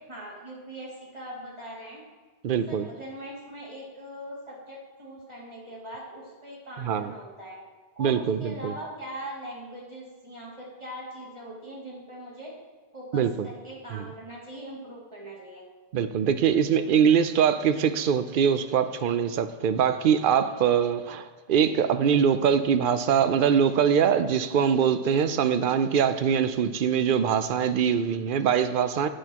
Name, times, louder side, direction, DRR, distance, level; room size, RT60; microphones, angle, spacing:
voice 1, 0.0-2.0 2.5-7.6 8.0-12.5 12.9-15.6, right 1 dB, 25° right, -6 dB, 2.6 m, -41 dB
voice 2, 2.4-2.9 6.8-7.1 8.0-8.7 13.1-13.5 13.9-14.1 15.9-29.1, right 7 dB, 60° right, 10 dB, 0.7 m, -23 dB
11.0 x 8.2 x 2.9 m, 1.4 s
omnidirectional pair, 1.1 m